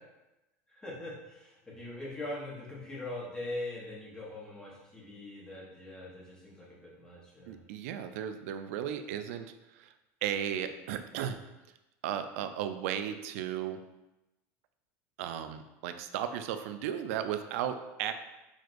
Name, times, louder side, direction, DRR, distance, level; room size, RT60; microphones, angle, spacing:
voice 1, 0.7-7.6, left 1 dB, 10° left, -6 dB, 1.0 m, -42 dB
voice 2, 7.5-9.4 9.8-9.9 10.2-11.4 12.0-13.8 15.2-18.1, right 9 dB, 75° right, 8 dB, 0.3 m, -35 dB
6.1 x 2.4 x 2.5 m, 0.98 s
supercardioid pair, 155°, 8 cm